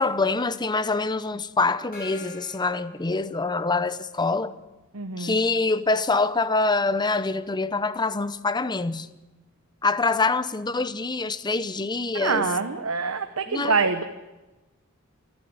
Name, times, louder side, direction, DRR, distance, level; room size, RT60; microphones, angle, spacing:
voice 1, 0.0-4.5 5.2-9.1 9.8-12.5 13.5-13.8, left 3 dB, 20° left, 0.8 m, -25 dB
Gong, 1.9-4.0, left 2 dB, 45° left, 5.7 m, -47 dB
voice 2, 4.9-5.4 12.1-14.0, right 4 dB, 75° right, 1.0 m, -25 dB
28.0 x 10.5 x 9.4 m
head